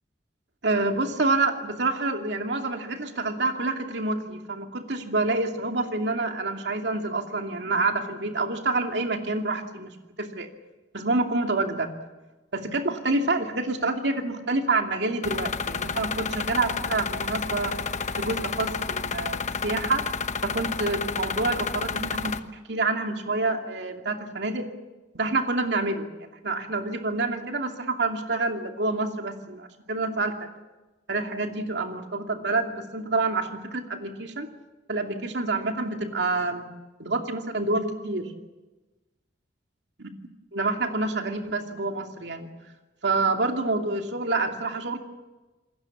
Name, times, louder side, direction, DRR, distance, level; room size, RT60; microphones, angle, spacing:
voice 1, 0.6-10.5 10.9-11.9 12.5-17.7 18.2-20.0 20.4-22.4 22.7-24.7 25.1-30.4 31.1-34.5 34.9-36.6 37.0-38.3 40.5-42.5 43.0-45.0, right 3 dB, 70° right, 4 dB, 2.6 m, -27 dB
sound 1, 15.2-22.4, left 5 dB, 40° left, 1.0 m, -30 dB
28.0 x 20.0 x 7.3 m, 1.2 s
head